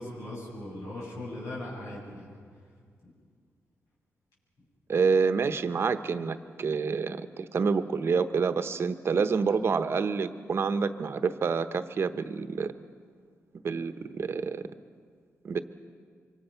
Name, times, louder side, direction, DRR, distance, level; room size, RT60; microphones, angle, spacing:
voice 1, 0.0-2.4, left 1 dB, 75° left, -5 dB, 7.6 m, -39 dB
voice 2, 4.9-12.7 13.6-14.6 15.4-15.6, right 5 dB, 55° right, 11 dB, 1.0 m, -28 dB
26.0 x 24.5 x 5.8 m, 2.1 s
cardioid pair, 100°, 5 cm